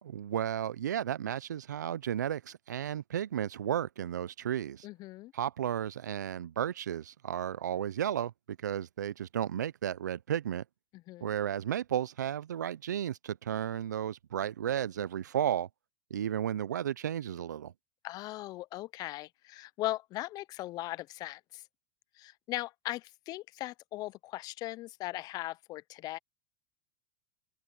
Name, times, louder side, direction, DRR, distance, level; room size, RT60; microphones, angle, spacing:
voice 1, 0.0-4.9 5.3-10.6 11.2-15.7 16.1-17.7, right 10 dB, 85° right, 0.6 m, -33 dB
voice 2, 4.8-5.3 10.9-11.3 18.0-21.6 22.2-26.2, left 17 dB, 45° left, 0.9 m, -39 dB
open air
hypercardioid pair, 100°, 9 cm